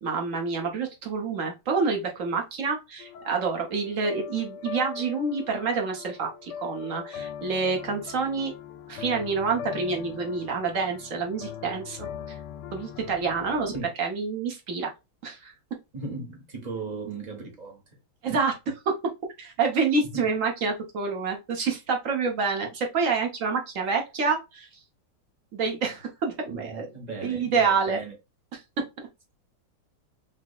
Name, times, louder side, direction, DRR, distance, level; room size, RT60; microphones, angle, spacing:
voice 1, 0.0-8.5 8.9-12.4 12.7-13.7 14.0-14.9 15.2-15.5 18.2-18.9 19.4-24.7 25.5-26.9 27.2-28.0, right 4 dB, 55° right, 1.0 m, -27 dB
sound 1, 3.0-13.8, left 8 dB, 75° left, 1.0 m, -40 dB
voice 2, 15.9-17.8 20.1-20.3 26.5-28.1, right 3 dB, 35° right, 0.7 m, -37 dB
5.9 x 2.1 x 2.3 m
omnidirectional pair, 2.3 m